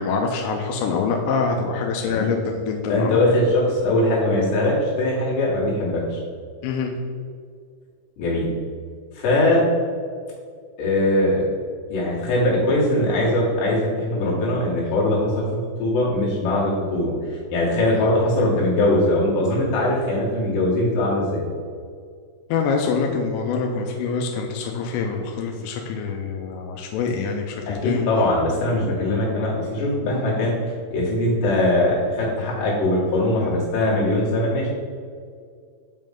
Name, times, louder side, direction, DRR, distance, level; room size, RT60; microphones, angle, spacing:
voice 1, 0.0-3.2 6.6-6.9 22.5-28.1, left 5 dB, 90° left, 2 dB, 3.2 m, -25 dB
voice 2, 2.9-6.2 8.2-8.5 9.2-9.7 10.8-11.5 11.9-21.4 27.7-30.6 30.9-34.7, left 1 dB, 65° left, -6 dB, 3.7 m, -21 dB
7.4 x 5.3 x 3.7 m, 2.1 s
omnidirectional pair, 5.8 m